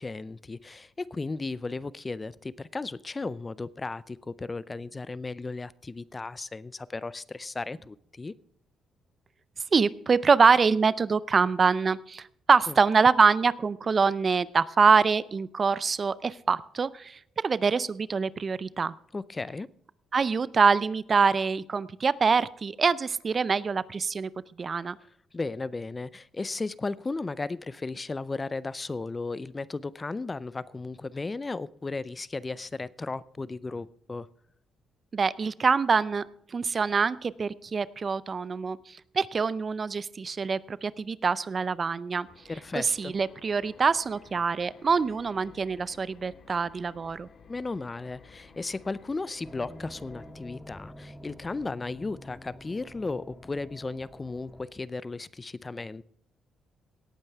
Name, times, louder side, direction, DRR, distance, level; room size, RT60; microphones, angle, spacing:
voice 1, 0.0-8.3 12.7-12.8 19.1-19.7 25.3-34.3 42.5-43.1 47.5-56.0, left 3 dB, 25° left, 0.4 m, -35 dB
voice 2, 9.7-18.9 20.1-24.3 24.6-25.0 35.1-36.3 36.5-42.3 42.7-47.3, right 5 dB, 40° right, 0.5 m, -25 dB
sound 1, 42.3-50.3, left 5 dB, 55° left, 1.8 m, -54 dB
sound 2, 49.4-54.6, left 1 dB, 10° left, 2.0 m, -47 dB
18.0 x 9.0 x 3.5 m
cardioid pair, 90°, 0 cm